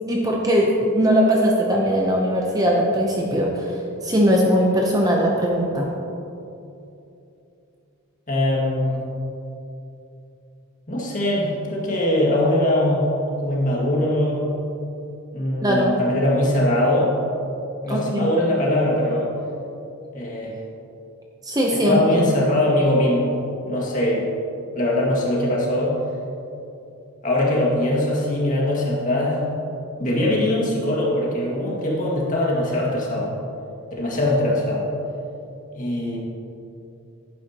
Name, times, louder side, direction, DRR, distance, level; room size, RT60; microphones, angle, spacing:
voice 1, 0.1-5.9 15.6-16.0 17.9-18.3 21.4-22.3, equal, 15° right, -1 dB, 0.7 m, -20 dB
voice 2, 8.3-9.0 10.9-13.0 13.4-14.4 15.3-17.1 17.8-19.3 20.1-20.6 21.8-23.3 23.6-24.2 24.8-26.0 27.2-29.4 30.0-33.3 34.0-34.9 35.7-36.2, left 1 dB, 35° left, -4 dB, 2.0 m, -21 dB
11.5 x 9.8 x 3.0 m, 2.8 s
head